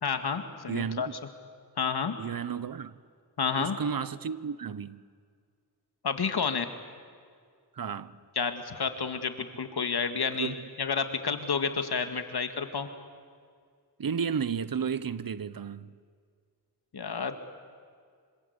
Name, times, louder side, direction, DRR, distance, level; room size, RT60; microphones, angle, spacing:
voice 1, 0.0-1.1 1.8-2.2 3.4-3.8 6.0-6.7 8.4-12.9 16.9-17.4, left 6 dB, 70° left, 2.2 m, -30 dB
voice 2, 0.7-1.1 2.2-3.0 3.6-5.0 7.7-8.2 10.2-10.7 14.0-15.9, right 7 dB, 55° right, 1.0 m, -33 dB
26.0 x 26.0 x 8.3 m
wide cardioid pair, 75°, 40 cm